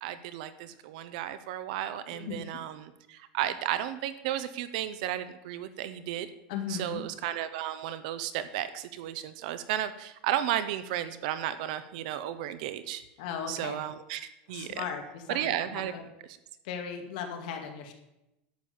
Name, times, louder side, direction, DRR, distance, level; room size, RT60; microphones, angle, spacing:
voice 1, 0.0-6.3 6.7-13.0 13.5-14.9 15.3-15.9, right 12 dB, 60° right, 13 dB, 0.8 m, -33 dB
voice 2, 2.1-2.5 6.5-7.0 13.2-13.8 14.5-16.0 16.6-17.9, left 7 dB, 60° left, 4 dB, 2.1 m, -37 dB
11.5 x 7.5 x 7.1 m, 0.90 s
supercardioid pair, 180°, 5 cm